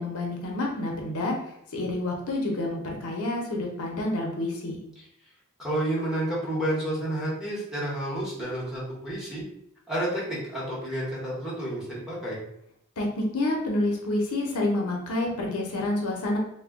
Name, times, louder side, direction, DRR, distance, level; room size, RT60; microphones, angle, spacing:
voice 1, 0.0-4.8 13.0-16.4, left 2 dB, 75° left, 0 dB, 0.7 m, -28 dB
voice 2, 5.6-9.4 9.9-12.4, right 1 dB, 5° right, -7 dB, 0.8 m, -30 dB
2.1 x 2.1 x 3.4 m, 0.73 s
head